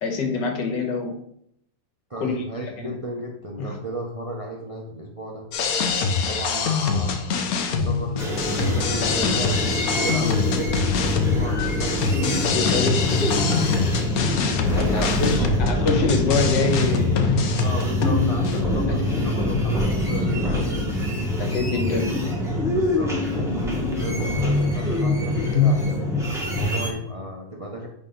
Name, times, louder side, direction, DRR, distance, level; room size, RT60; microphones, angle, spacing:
voice 1, 0.0-1.1 2.2-2.4 2.8-2.9 3.6-3.8 12.2-13.8 14.7-17.2 18.9-19.0 21.4-22.1, left 4 dB, 85° left, 4 dB, 1.8 m, -26 dB
voice 2, 2.1-5.5 6.2-9.3 9.7-12.6 14.9-15.5 17.6-20.9 22.7-23.5 24.0-27.9, right 1 dB, 45° right, 0 dB, 0.4 m, -34 dB
sound 1, 5.5-18.6, left 5 dB, 65° left, 1.1 m, -25 dB
sound 2, 8.2-26.9, left 1 dB, ahead, 1.2 m, -24 dB
9.6 x 3.7 x 3.8 m, 0.72 s
omnidirectional pair, 1.9 m